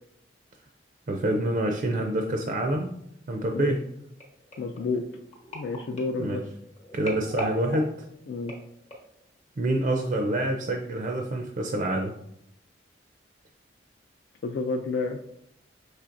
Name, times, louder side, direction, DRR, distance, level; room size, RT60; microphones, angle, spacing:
voice 1, 1.1-2.9 3.3-3.8 6.2-6.4 6.9-8.1 9.6-12.1, right 1 dB, 45° right, 3 dB, 0.4 m, -27 dB
sound 1, 4.2-9.2 9.8-10.0 10.3-10.4, equal, 35° left, 0.9 m, -40 dB
voice 2, 4.6-5.0 5.5-6.4 8.3-8.5 14.4-15.2, left 3 dB, 70° left, 3 dB, 0.3 m, -30 dB
5.7 x 3.2 x 2.5 m, 0.75 s
head